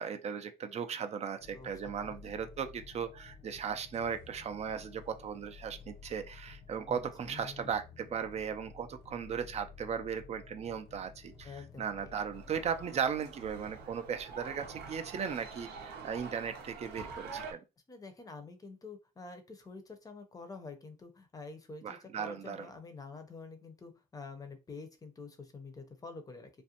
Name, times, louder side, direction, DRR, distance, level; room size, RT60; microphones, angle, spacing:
voice 1, 0.0-17.6 21.8-22.7, right 7 dB, 40° right, 0.4 m, -37 dB
sound 1, 1.4-12.9, left 6 dB, 75° left, 0.6 m, -53 dB
voice 2, 1.5-2.2 6.9-7.0 7.3-7.7 11.4-12.1 17.9-26.5, left 4 dB, 20° left, 0.6 m, -48 dB
sound 2, 12.3-17.5, right 5 dB, 75° right, 0.7 m, -46 dB
2.5 x 2.1 x 2.8 m
cardioid pair, 110°, 17 cm